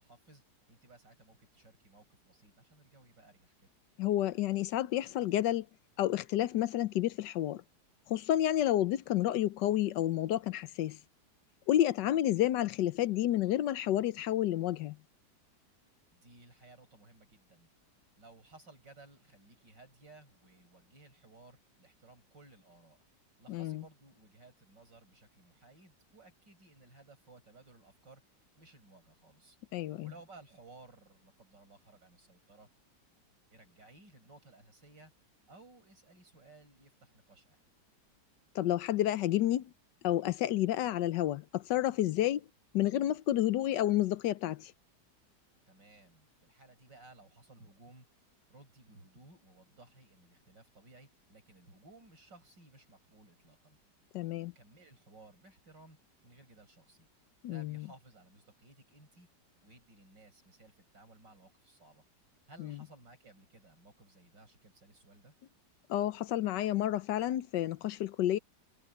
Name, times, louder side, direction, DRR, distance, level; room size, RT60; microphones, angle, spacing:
voice 1, 0.0-3.7 16.1-17.7 18.2-23.0 23.4-28.2 28.6-29.6 30.0-32.7 33.5-35.1 35.5-37.6 45.7-48.1 48.5-53.8 54.3-56.0 56.2-57.1 57.4-59.3 59.6-62.0 62.5-65.3, right 2 dB, 85° right, 8.3 m, -58 dB
voice 2, 4.0-5.7 6.0-7.6 8.1-11.0 11.7-15.0 23.5-23.8 29.7-30.1 38.5-39.7 40.0-42.4 42.7-44.7 54.1-54.5 57.4-57.9 62.6-62.8 65.9-68.4, left 13 dB, 80° left, 1.4 m, -30 dB
omnidirectional pair, 1.9 m